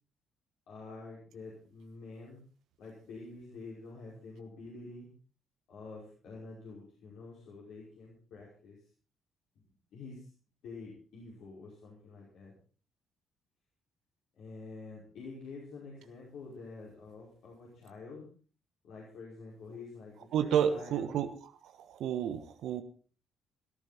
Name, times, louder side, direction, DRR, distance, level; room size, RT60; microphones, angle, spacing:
voice 1, 0.7-2.4 2.8-5.1 5.7-8.8 9.6-9.7 9.9-10.3 10.6-12.5 14.4-18.2 18.8-21.1, left 3 dB, 60° left, -5 dB, 5.4 m, -48 dB
voice 2, 20.3-21.3 21.6-22.8, right 9 dB, 60° right, 9 dB, 1.2 m, -30 dB
17.0 x 14.0 x 4.3 m, 0.41 s
figure-of-eight pair, 45°, 0 cm